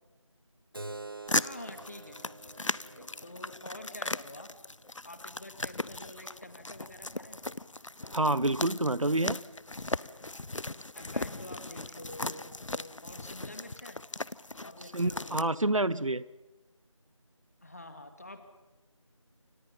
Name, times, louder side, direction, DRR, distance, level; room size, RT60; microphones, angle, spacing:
Keyboard (musical), 0.7-5.9, right 2 dB, 45° right, 0.9 m, -48 dB
sound 1, 1.3-15.4, left 2 dB, 70° left, 0.8 m, -38 dB
voice 1, 1.4-4.5 5.0-7.8 11.0-14.0 14.6-15.6 17.6-18.5, left 1 dB, 30° left, 8 dB, 2.1 m, -48 dB
voice 2, 8.1-9.4 14.9-16.2, right 2 dB, 75° right, 19 dB, 1.0 m, -28 dB
29.0 x 26.5 x 5.6 m, 1.1 s
figure-of-eight pair, 175°, 17 cm